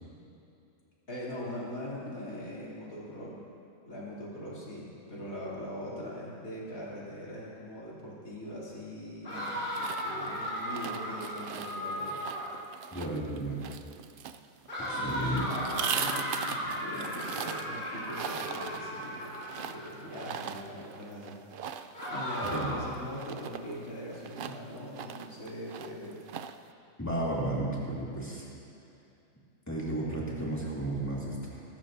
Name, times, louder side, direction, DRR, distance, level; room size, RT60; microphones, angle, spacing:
voice 1, 1.1-3.4 3.8-12.2 14.8-21.4 21.7-21.8 22.1-26.2, equal, 70° left, -7 dB, 3.7 m, -41 dB
sound 1, 9.2-12.6 14.7-20.0 21.9-23.0, equal, 35° left, 3.0 m, -36 dB
sound 2, 9.3-26.7, right 8 dB, 80° right, 0.4 m, -41 dB
voice 2, 12.9-13.6 14.9-15.4 22.4-22.7 27.0-28.4 29.7-31.6, right 1 dB, 10° left, -6 dB, 2.7 m, -33 dB
22.0 x 13.5 x 2.7 m, 2.6 s
omnidirectional pair, 1.5 m